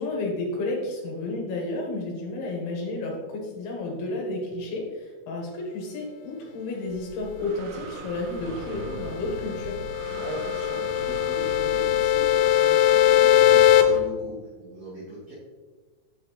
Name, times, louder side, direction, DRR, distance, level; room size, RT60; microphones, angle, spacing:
voice 1, 0.0-9.8, left 2 dB, 70° left, -1 dB, 3.0 m, -31 dB
Breathing, 6.9-14.0, right 3 dB, 85° right, 3.0 m, -39 dB
sound 1, 8.9-13.8, left 12 dB, 90° left, 2.9 m, -21 dB
voice 2, 10.0-15.3, right 1 dB, 45° right, -12 dB, 3.2 m, -39 dB
7.6 x 6.1 x 3.2 m, 1.3 s
omnidirectional pair, 5.0 m